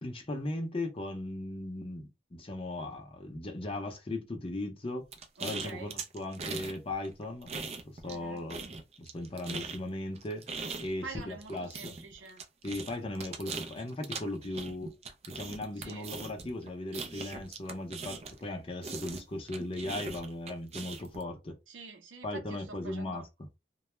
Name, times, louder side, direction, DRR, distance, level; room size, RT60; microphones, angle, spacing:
voice 1, 0.0-5.0 5.4-8.7 9.0-10.4 10.8-12.0 12.6-14.9 15.3-21.6 22.2-23.5, left 1 dB, 30° left, 0.6 m, -38 dB
sound 1, 5.1-6.8 7.0-8.2 8.5-18.5 18.8-21.2, right 4 dB, 35° right, 0.4 m, -40 dB
voice 2, 5.4-6.0 8.0-8.5 11.0-12.4 15.8-16.1 21.7-23.3, right 3 dB, 90° right, 0.7 m, -47 dB
2.2 x 2.0 x 2.9 m
head